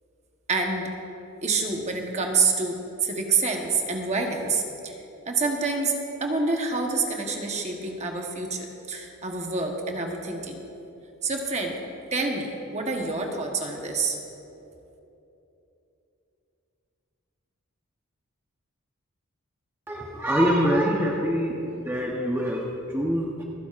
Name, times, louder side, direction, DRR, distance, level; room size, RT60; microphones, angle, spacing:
voice 1, 0.5-0.9 1.4-4.9 5.3-10.6 11.2-11.8 12.1-14.2, right 4 dB, 30° right, 2 dB, 1.1 m, -27 dB
voice 2, 19.9-23.4, equal, 10° right, -2 dB, 0.8 m, -25 dB
27.0 x 10.0 x 2.5 m, 3.0 s
head